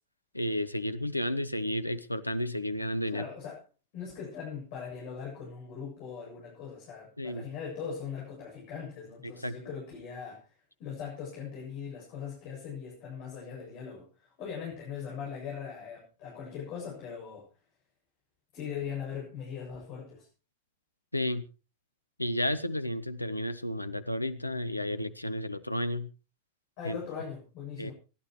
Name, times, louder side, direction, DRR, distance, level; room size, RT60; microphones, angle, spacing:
voice 1, 0.3-3.2 7.2-7.5 9.2-9.6 21.1-21.4 22.2-26.1 26.8-27.0 27.8-27.9, left 1 dB, 85° left, 12 dB, 0.9 m, -32 dB
voice 2, 3.0-3.6 3.9-10.5 10.8-17.5 18.5-20.3 26.8-27.9, left 7 dB, 45° left, -4 dB, 7.9 m, -40 dB
26.5 x 11.5 x 3.1 m, 0.33 s
figure-of-eight pair, 90°, 0 cm